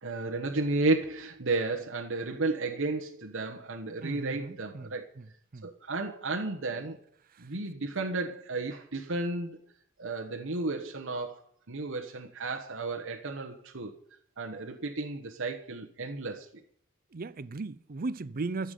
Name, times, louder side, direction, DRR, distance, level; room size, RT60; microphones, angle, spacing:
voice 1, 0.0-5.1 5.6-7.0 7.4-9.6 10.0-11.4 11.7-13.9 14.4-16.5, right 3 dB, 65° right, 1.3 m, -33 dB
voice 2, 4.0-5.7 7.3-7.5 17.1-18.7, right 3 dB, 45° right, 0.6 m, -37 dB
14.0 x 7.2 x 9.2 m
head